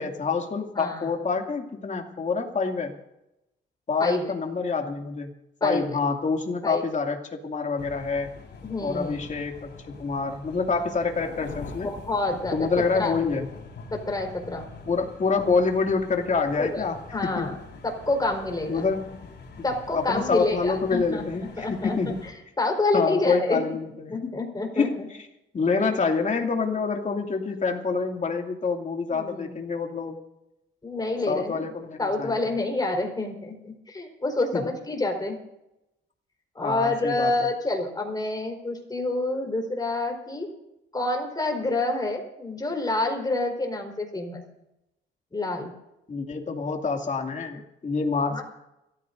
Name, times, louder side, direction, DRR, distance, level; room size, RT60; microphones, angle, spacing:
voice 1, 0.0-2.9 3.9-5.3 5.6-8.3 8.8-11.9 12.5-13.5 14.9-17.0 17.2-17.5 18.7-19.2 19.9-22.2 22.9-24.3 24.8-25.1 25.5-30.2 31.3-32.4 34.5-34.6 36.6-37.3 46.1-48.4, left 4 dB, 40° left, 3 dB, 2.5 m, -27 dB
voice 2, 0.7-1.1 4.0-4.3 5.6-5.8 6.6-6.8 8.6-9.2 11.8-13.2 13.9-14.7 16.6-17.6 17.8-18.9 19.6-21.2 21.6-22.1 22.6-23.6 24.1-25.1 25.8-25.9 29.1-29.6 30.8-31.7 32.0-35.4 36.5-40.5 40.9-44.4 45.3-45.7 48.3-48.4, left 2 dB, 20° left, 2 dB, 4.4 m, -28 dB
sound 1, 7.8-22.3, left 4 dB, 60° left, 4.7 m, -44 dB
29.0 x 14.5 x 2.6 m, 0.89 s
cardioid pair, 90°, 20 cm